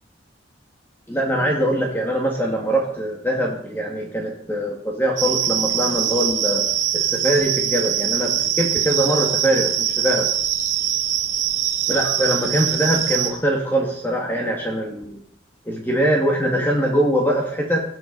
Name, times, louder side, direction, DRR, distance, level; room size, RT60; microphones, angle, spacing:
voice 1, 1.1-6.6 6.9-10.3 11.9-15.2 15.7-17.8, right 1 dB, 10° left, 0 dB, 2.2 m, -22 dB
sound 1, 5.2-13.3, right 10 dB, 40° right, 3.4 m, -23 dB
20.0 x 13.0 x 5.5 m, 0.64 s
head